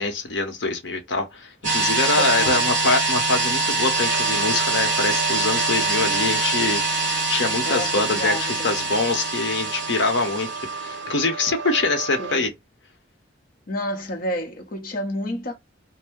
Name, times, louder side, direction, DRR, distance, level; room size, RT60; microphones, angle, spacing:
voice 1, 0.0-12.5, left 3 dB, 70° left, 0.9 m, -24 dB
sound 1, 1.6-11.0, right 3 dB, 40° right, 1.2 m, -24 dB
voice 2, 2.2-2.7 7.6-9.0 12.2-12.5 13.7-15.5, left 1 dB, 45° left, 0.8 m, -30 dB
sound 2, 4.0-12.4, right 5 dB, 60° right, 0.4 m, -35 dB
2.6 x 2.1 x 3.5 m
head